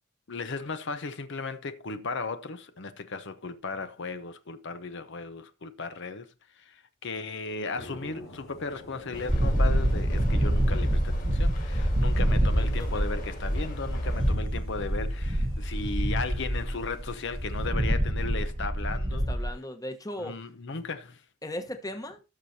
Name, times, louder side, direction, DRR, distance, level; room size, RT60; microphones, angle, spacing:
voice 1, 0.3-19.3 20.2-21.2, left 4 dB, 65° left, 0.8 m, -36 dB
sound 1, 7.7-17.7, equal, 90° left, 4.4 m, -47 dB
sound 2, 9.1-14.3, equal, 45° left, 3.5 m, -38 dB
sound 3, 9.3-19.5, right 1 dB, 25° right, 0.9 m, -26 dB
voice 2, 12.4-13.2 19.1-20.5 21.4-22.2, left 1 dB, 20° left, 1.1 m, -38 dB
17.5 x 6.4 x 2.8 m
head